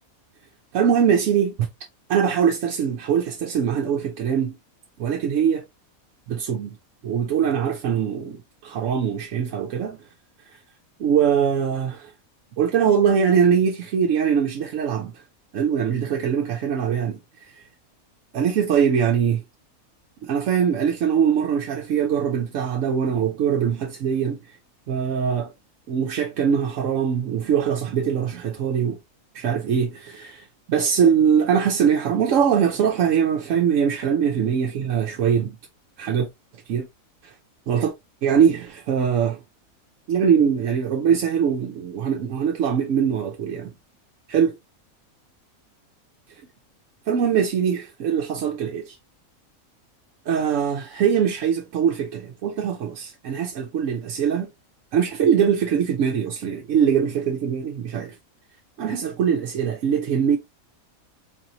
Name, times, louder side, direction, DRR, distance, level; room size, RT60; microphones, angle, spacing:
voice 1, 0.7-1.5 2.1-4.6 5.0-5.6 6.3-6.8 7.0-10.0 11.0-12.1 12.6-15.1 15.5-17.2 17.6-17.7 18.3-19.4 20.2-24.4 24.9-25.5 25.9-29.0 29.3-35.6 36.0-36.3 36.7-36.9 37.2-37.3 37.7-37.9 38.2-39.4 40.1-43.7 44.3-44.5 47.1-49.0 50.3-54.5 54.9-58.1 58.8-60.4, right 7 dB, 65° right, 0.9 m, -22 dB
4.1 x 2.9 x 2.6 m
omnidirectional pair, 1.5 m